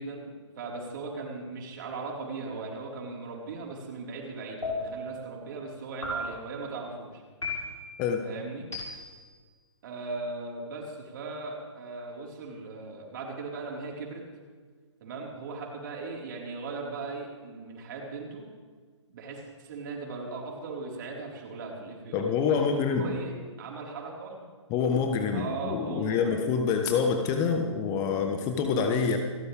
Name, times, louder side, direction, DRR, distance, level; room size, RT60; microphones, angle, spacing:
voice 1, 0.0-7.2 8.2-8.7 9.8-14.2 15.0-18.4 19.1-24.4 25.3-26.5, right 3 dB, 45° right, -2 dB, 4.7 m, -38 dB
sound 1, 4.6-5.2 6.0-6.6 7.4-8.0 8.7-9.3, left 2 dB, 85° left, 6.1 m, -35 dB
voice 2, 22.1-23.2 24.7-29.2, left 6 dB, 25° left, 5 dB, 1.3 m, -26 dB
28.5 x 13.0 x 3.6 m, 1.5 s
figure-of-eight pair, 135°, 16 cm